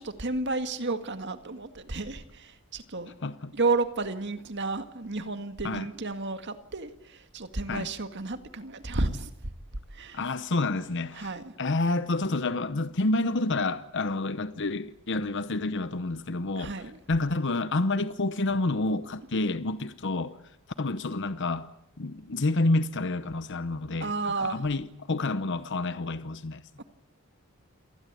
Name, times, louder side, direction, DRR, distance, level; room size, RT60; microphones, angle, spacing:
voice 1, 0.0-3.1 3.5-9.3 9.9-10.2 11.1-11.5 16.6-17.0 24.0-24.6 26.8-26.9, right 3 dB, 55° right, 2.0 m, -32 dB
voice 2, 10.1-11.3 11.6-16.7 17.1-20.4 20.8-21.7 22.0-24.1 24.4-26.6, left 2 dB, 55° left, 0.9 m, -29 dB
28.5 x 20.0 x 8.5 m
head